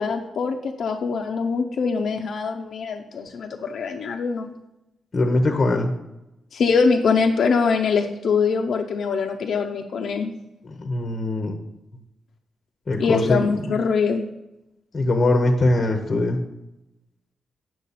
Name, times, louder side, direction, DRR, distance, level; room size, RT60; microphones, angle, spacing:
voice 1, 0.0-4.5 6.5-10.3 13.0-14.3, left 5 dB, 65° left, 2 dB, 0.5 m, -23 dB
voice 2, 5.1-5.9 10.6-11.6 12.9-13.4 13.7-13.8 14.9-16.4, left 2 dB, 35° left, 5 dB, 0.8 m, -21 dB
8.4 x 6.2 x 4.1 m, 0.92 s
cardioid pair, 105°, 0 cm